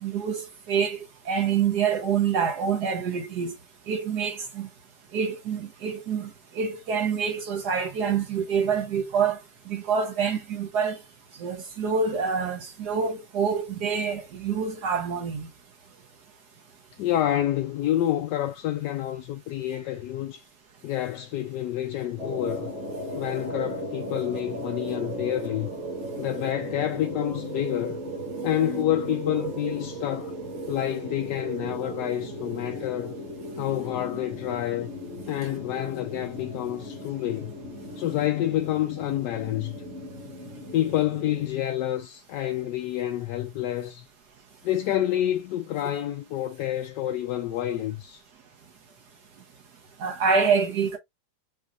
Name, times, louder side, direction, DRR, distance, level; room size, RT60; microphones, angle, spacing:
voice 1, 0.0-3.5 3.9-4.7 5.1-9.4 9.7-11.0 11.4-15.5 50.0-51.0, right 6 dB, 65° right, 1.3 m, -26 dB
voice 2, 17.0-20.4 20.8-22.7 23.1-25.7 26.2-28.0 28.4-30.3 30.7-33.2 33.6-34.9 35.3-37.5 38.0-39.8 40.7-44.1 44.6-48.2, left 13 dB, 75° left, 1.1 m, -28 dB
sound 1, 22.2-41.5, right 1 dB, 35° right, 2.3 m, -36 dB
6.1 x 2.8 x 2.3 m
omnidirectional pair, 2.1 m